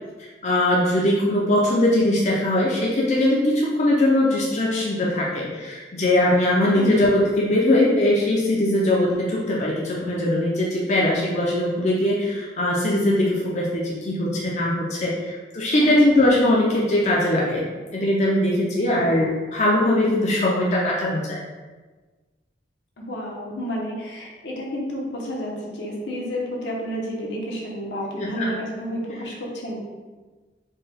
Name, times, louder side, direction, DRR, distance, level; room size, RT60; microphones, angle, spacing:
voice 1, 0.4-17.6 17.9-21.4 28.2-28.5, left 1 dB, 40° left, -4 dB, 0.5 m, -21 dB
voice 2, 6.7-7.1 23.0-29.8, equal, 80° left, -3 dB, 0.9 m, -30 dB
4.5 x 2.2 x 3.3 m, 1.3 s
head